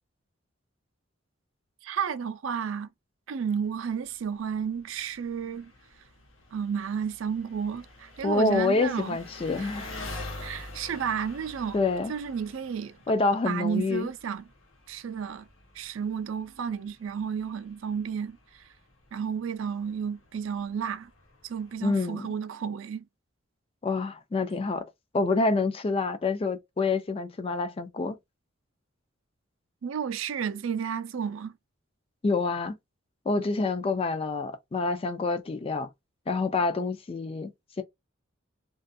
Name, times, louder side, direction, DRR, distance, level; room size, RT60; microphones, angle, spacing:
voice 1, 1.8-2.9 3.3-5.7 6.5-9.2 9.6-9.7 10.4-11.8 12.1-13.0 13.4-14.5 14.9-15.5 15.7-18.7 19.1-21.1 21.4-23.1 29.8-31.5, right 7 dB, 75° right, 0.4 m, -32 dB
Engine, 3.7-21.8, left 2 dB, 80° left, 0.9 m, -47 dB
voice 2, 8.2-9.9 11.7-12.1 13.1-14.1 21.8-22.3 23.8-24.9 25.1-28.2 32.2-32.8 33.3-35.9 36.3-37.5 37.8-37.9, left 3 dB, 30° left, 0.3 m, -27 dB
2.4 x 2.3 x 2.5 m
head